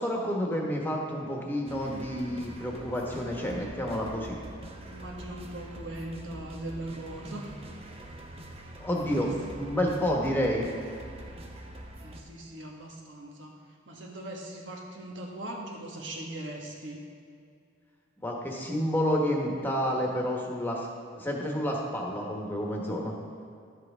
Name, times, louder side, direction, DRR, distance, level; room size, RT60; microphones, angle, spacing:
voice 1, 0.0-4.4 8.8-9.3 9.6-10.7 18.2-20.9 21.1-23.1, equal, 10° left, -1 dB, 1.2 m, -29 dB
sound 1, 1.7-12.2, right 1 dB, 35° right, 0.8 m, -44 dB
voice 2, 3.1-3.7 4.3-7.5 8.5-8.6 8.9-9.5 12.0-17.0, right 1 dB, 80° right, -1 dB, 1.6 m, -41 dB
12.0 x 7.7 x 3.6 m, 2.3 s
head